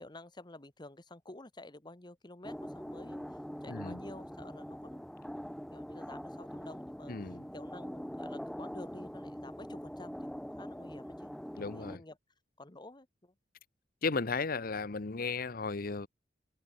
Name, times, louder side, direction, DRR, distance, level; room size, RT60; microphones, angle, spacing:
voice 1, 0.0-5.1 5.7-12.2 12.6-13.3, left 2 dB, 25° left, 1.5 m, -51 dB
sound 1, 2.4-12.0, equal, 5° left, 0.5 m, -43 dB
voice 2, 3.7-4.0 7.1-7.4 11.6-12.0 14.0-16.1, left 4 dB, 55° left, 0.9 m, -35 dB
head